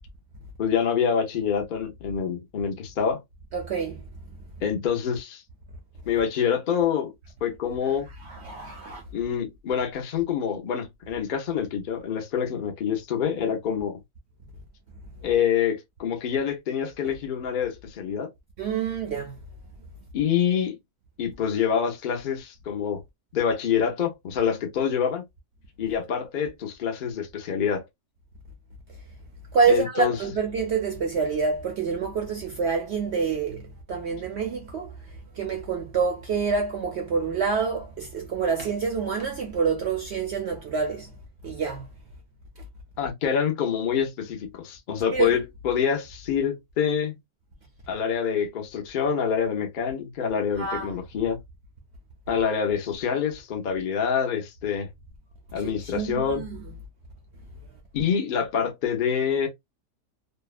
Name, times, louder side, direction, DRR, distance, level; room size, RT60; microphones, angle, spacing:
voice 1, 0.6-3.2 4.6-5.4 6.1-7.1 7.4-8.1 9.1-14.0 15.2-18.3 20.1-20.7 21.2-23.0 23.3-25.2 25.8-27.8 29.7-30.2 43.0-47.2 47.9-51.4 52.3-54.9 55.5-56.4 57.9-59.5, left 7 dB, 70° left, 0.4 m, -26 dB
voice 2, 3.5-4.0 8.2-9.0 18.6-19.3 29.5-41.1 41.4-41.9 45.1-45.3 50.6-51.0 55.6-56.6, right 5 dB, 65° right, 0.6 m, -27 dB
2.7 x 2.1 x 2.3 m
omnidirectional pair, 1.7 m